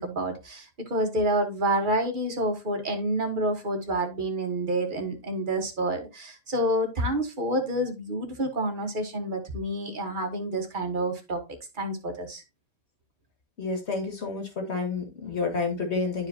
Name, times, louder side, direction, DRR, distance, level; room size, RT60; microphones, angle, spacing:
voice 1, 0.0-11.4 11.7-12.4, right 1 dB, 35° right, 1.5 m, -28 dB
voice 2, 13.6-16.3, left 4 dB, 50° left, 2.3 m, -29 dB
11.0 x 4.8 x 2.8 m
omnidirectional pair, 1.5 m